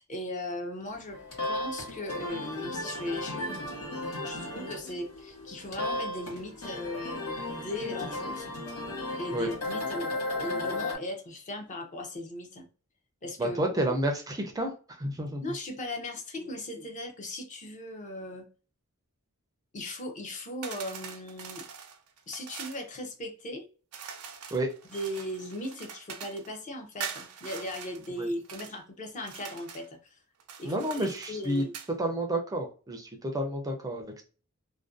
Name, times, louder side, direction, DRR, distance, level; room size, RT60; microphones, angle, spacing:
voice 1, 0.0-8.6 9.2-12.7 13.2-13.6 15.4-18.5 19.7-21.6 22.3-23.7 24.9-30.2 30.6-31.7, left 1 dB, 35° left, 3 dB, 0.5 m, -38 dB
sound 1, 1.0-10.9, left 2 dB, 85° left, 1.1 m, -35 dB
voice 2, 13.4-14.7 15.0-15.4 24.5-24.7 28.2-28.3 30.6-31.6 32.0-34.2, right 1 dB, 15° right, 3 dB, 0.4 m, -30 dB
sound 2, 20.6-22.8 23.9-26.5 27.0-28.7 29.2-29.9 30.4-31.9, right 7 dB, 85° right, 0.4 m, -43 dB
2.4 x 2.2 x 2.4 m, 0.38 s
head